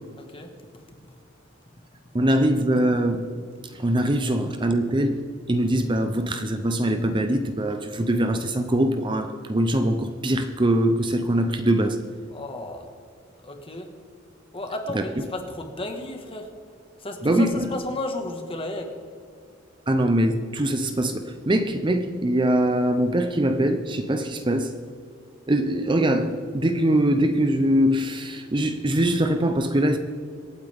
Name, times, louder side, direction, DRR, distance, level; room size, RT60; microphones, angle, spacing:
voice 1, 0.2-0.5 12.3-12.9 13.4-13.9 14.5-16.5 17.0-18.9, left 2 dB, 30° left, 4 dB, 1.6 m, -33 dB
voice 2, 2.1-3.3 3.7-5.2 5.5-12.0 14.9-15.0 17.2-17.7 19.9-24.8 25.5-30.0, right 1 dB, 25° right, 7 dB, 0.7 m, -22 dB
26.0 x 8.8 x 3.6 m, 2.2 s
head